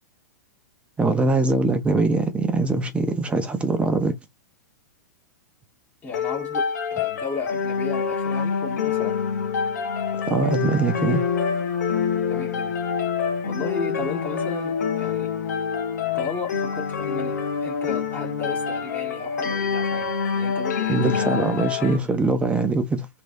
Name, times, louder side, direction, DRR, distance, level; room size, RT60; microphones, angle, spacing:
voice 1, 1.0-4.1 10.3-11.2 20.9-23.1, right 3 dB, 15° right, 0.9 m, -22 dB
voice 2, 6.0-9.2 12.3-12.8 13.4-15.6 16.1-21.6, left 4 dB, 20° left, 1.8 m, -35 dB
sound 1, 6.1-22.0, left 6 dB, 75° left, 1.1 m, -26 dB
3.3 x 3.2 x 2.7 m
hypercardioid pair, 115°, 9 cm